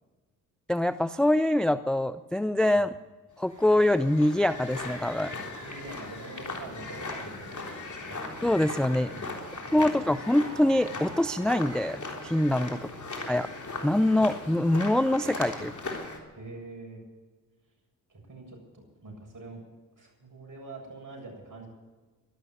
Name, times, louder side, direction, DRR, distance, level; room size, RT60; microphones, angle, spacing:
voice 1, 0.7-2.9 3.4-5.3 8.4-9.1 9.7-12.8 13.3-13.5 13.8-15.7, left 1 dB, ahead, 13 dB, 0.5 m, -24 dB
sound 1, 3.4-16.2, left 3 dB, 40° left, 3.6 m, -38 dB
voice 2, 5.6-8.3 9.1-9.9 12.7-13.2 15.6-15.7 16.4-17.0 18.1-19.6 20.0-21.7, right 2 dB, 45° right, 1 dB, 7.4 m, -45 dB
Organ, 6.3-16.9, right 1 dB, 70° left, 4.1 m, -54 dB
sound 2, 6.5-15.9, right 5 dB, 75° right, 3.5 m, -53 dB
12.5 x 12.0 x 9.4 m, 1.3 s
hypercardioid pair, 45°, 43 cm